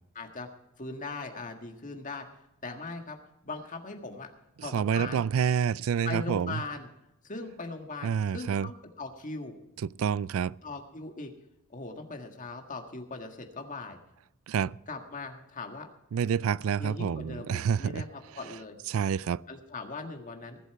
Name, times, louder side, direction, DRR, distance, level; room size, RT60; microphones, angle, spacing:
voice 1, 0.1-0.5 0.8-2.3 2.6-3.2 3.4-4.3 4.6-5.2 6.0-6.9 7.2-9.5 10.6-11.3 11.7-14.0 14.9-15.9 16.8-18.8 19.5-20.6, left 3 dB, 40° left, 1.6 m, -39 dB
voice 2, 4.6-6.6 8.0-8.7 9.8-10.6 14.5-14.8 16.1-18.0 18.9-19.4, right 7 dB, 90° right, 0.4 m, -28 dB
19.5 x 8.3 x 4.6 m
head